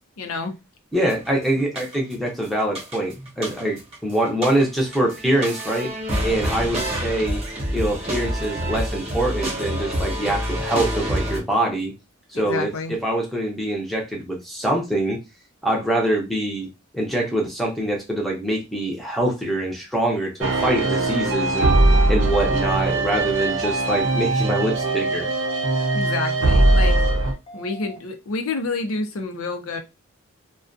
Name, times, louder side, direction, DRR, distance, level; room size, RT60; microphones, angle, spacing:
voice 1, 0.2-0.5 12.3-12.9 25.9-29.8, left 3 dB, 75° left, 0.6 m, -29 dB
voice 2, 0.9-5.9 6.2-7.4 7.7-11.9 12.3-12.7 13.0-15.2 15.6-16.7 16.9-21.7 22.1-25.3, right 1 dB, ahead, 0.6 m, -24 dB
sound 1, 1.1-1.3 1.7-2.3 2.6-3.9 4.2-11.4, equal, 30° right, 0.9 m, -27 dB
sound 2, 20.4-27.3, right 2 dB, 60° right, 0.5 m, -20 dB
sound 3, 23.5-24.0 24.5-25.0 25.5-26.0 26.5-27.0 27.5-28.0, right 2 dB, 30° left, 0.7 m, -41 dB
2.4 x 2.2 x 2.5 m
head